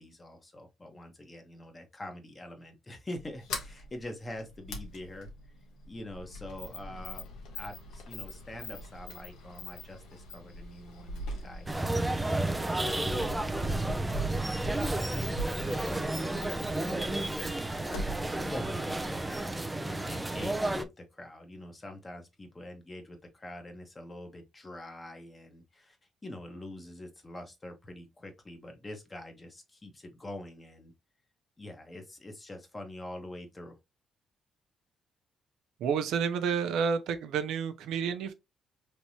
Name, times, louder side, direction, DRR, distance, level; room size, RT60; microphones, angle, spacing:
voice 1, 0.0-5.3 5.9-7.2 7.5-14.5 15.2-17.2 18.3-19.5 19.9-26.0 26.2-30.9 31.6-33.8, left 1 dB, 25° left, 1.1 m, -45 dB
Sliding door, 3.2-19.5, equal, 85° left, 1.1 m, -42 dB
sound 1, 11.7-20.8, right 2 dB, 10° right, 0.5 m, -32 dB
voice 2, 35.8-38.3, right 6 dB, 85° right, 0.6 m, -30 dB
3.4 x 2.9 x 2.8 m
cardioid pair, 90°, 0 cm